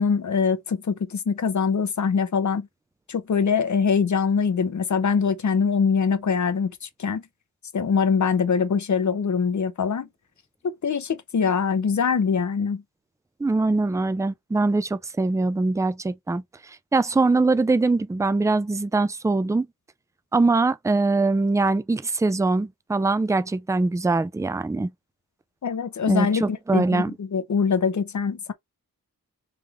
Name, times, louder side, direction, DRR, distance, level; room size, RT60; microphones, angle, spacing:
voice 1, 0.0-2.7 3.1-6.7 7.0-7.2 7.7-10.1 10.6-12.8 25.6-28.5, left 6 dB, 55° left, 0.7 m, -23 dB
voice 2, 13.4-19.7 20.3-24.9 26.1-27.1, right 3 dB, 10° right, 0.3 m, -22 dB
3.4 x 3.2 x 3.4 m
wide cardioid pair, 90°, 35 cm